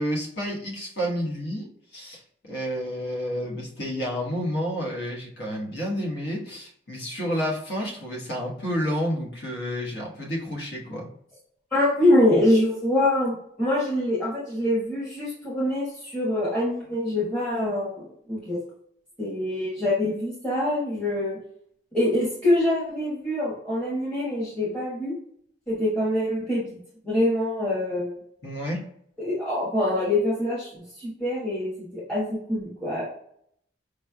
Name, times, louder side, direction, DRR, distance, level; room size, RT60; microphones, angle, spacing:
voice 1, 0.0-1.7 1.9-11.1 28.4-28.9, equal, 65° left, -2 dB, 1.2 m, -30 dB
voice 2, 11.7-18.0 18.3-18.6 19.2-21.4 21.9-25.1 25.7-26.8 27.0-28.1 29.2-30.7 31.0-33.0, left 1 dB, 5° left, -8 dB, 1.1 m, -24 dB
4.8 x 3.2 x 2.2 m, 0.68 s
head